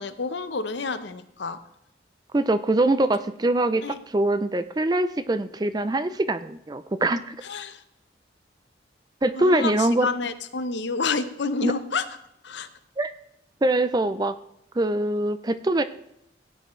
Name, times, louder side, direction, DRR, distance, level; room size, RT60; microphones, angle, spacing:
voice 1, 0.0-1.6 3.8-4.0 7.4-7.8 9.3-12.0 12.4-12.7, left 4 dB, 70° left, 11 dB, 0.8 m, -29 dB
voice 2, 2.3-7.4 9.2-10.1 11.6-11.7 13.0-13.1 13.6-14.4 14.8-15.8, right 2 dB, 20° right, 12 dB, 0.4 m, -23 dB
16.5 x 9.1 x 3.2 m, 0.81 s
head